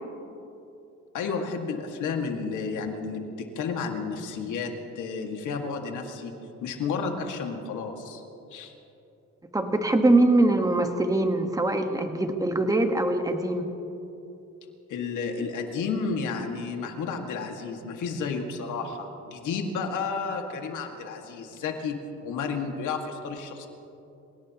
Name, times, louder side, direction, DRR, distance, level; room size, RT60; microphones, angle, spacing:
voice 1, 1.1-6.3 6.6-8.2 8.5-8.7 14.9-23.7, left 5 dB, 80° left, 3 dB, 2.0 m, -32 dB
voice 2, 9.5-13.7, right 2 dB, 10° right, 5 dB, 1.4 m, -23 dB
27.0 x 17.5 x 3.0 m, 3.0 s
cardioid pair, 90°, 30 cm